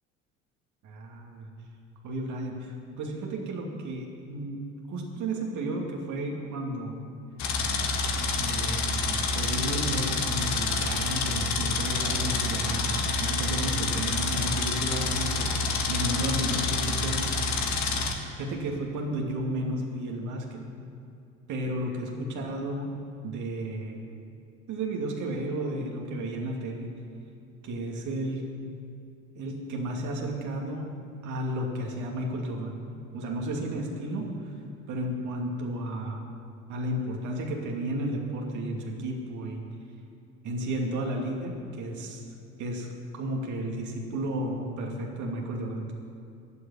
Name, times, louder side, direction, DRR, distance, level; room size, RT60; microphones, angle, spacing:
voice 1, 0.8-1.5 2.0-4.6 4.9-7.0 8.4-15.6 15.9-17.3 17.7-18.0 18.4-20.6 21.5-22.9 23.2-24.0 24.7-26.9 27.6-28.5 29.3-30.9 31.2-32.7 33.1-34.6 34.9-36.2 36.7-39.6 40.4-42.2 42.6-42.9 43.1-45.9, right 1 dB, 45° right, 0 dB, 2.6 m, -33 dB
sound 1, 7.4-18.1, left 3 dB, 45° left, 1.9 m, -28 dB
15.0 x 8.0 x 9.6 m, 2.6 s
figure-of-eight pair, 60°, 40 cm